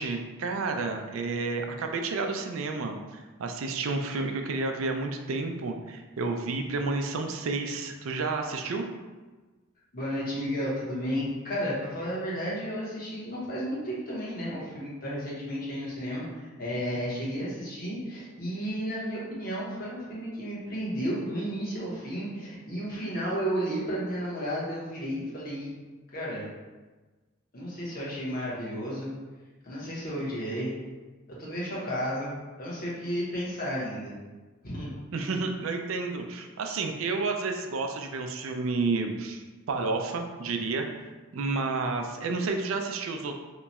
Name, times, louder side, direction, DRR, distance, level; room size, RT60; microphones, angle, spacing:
voice 1, 0.0-8.9 35.1-40.9 41.3-43.3, right 3 dB, 80° right, 4 dB, 0.4 m, -30 dB
voice 2, 9.9-25.7 26.1-26.5 27.5-29.1 29.6-30.8 31.4-34.1 34.6-34.9, equal, 45° left, -6 dB, 1.1 m, -33 dB
2.9 x 2.3 x 4.0 m, 1.3 s
head